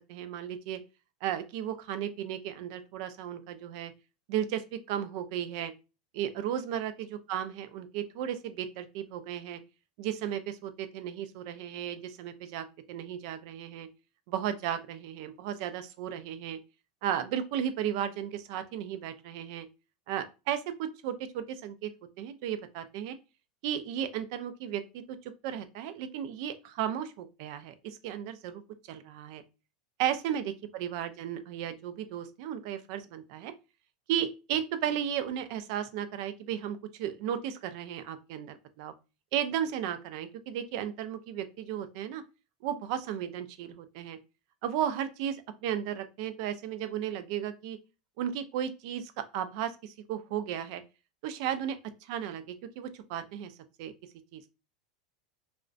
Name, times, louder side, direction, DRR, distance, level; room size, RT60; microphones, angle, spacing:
voice 1, 0.1-0.8 1.2-3.9 4.3-5.7 6.1-9.6 10.0-13.9 14.3-16.6 17.0-19.7 20.1-21.9 22.2-23.2 23.6-25.2 25.4-28.6 28.9-29.4 30.0-33.5 34.1-38.9 39.3-42.2 42.6-44.2 44.6-47.8 48.2-50.8 51.2-53.5 53.8-53.9 54.3-54.5, right 10 dB, 55° right, 10 dB, 0.3 m, -34 dB
2.4 x 2.1 x 2.4 m, 0.30 s
supercardioid pair, 145°, 4 cm